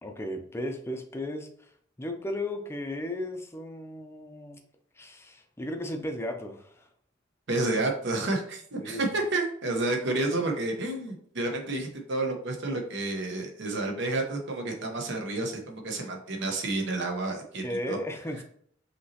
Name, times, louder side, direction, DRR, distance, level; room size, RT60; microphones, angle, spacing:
voice 1, 0.0-1.7 2.0-4.6 5.0-6.9 8.8-9.1 17.6-18.4, left 1 dB, 15° left, 4 dB, 0.5 m, -35 dB
voice 2, 7.5-18.0, right 2 dB, 60° right, 2 dB, 1.0 m, -30 dB
5.5 x 3.0 x 2.8 m, 0.62 s
head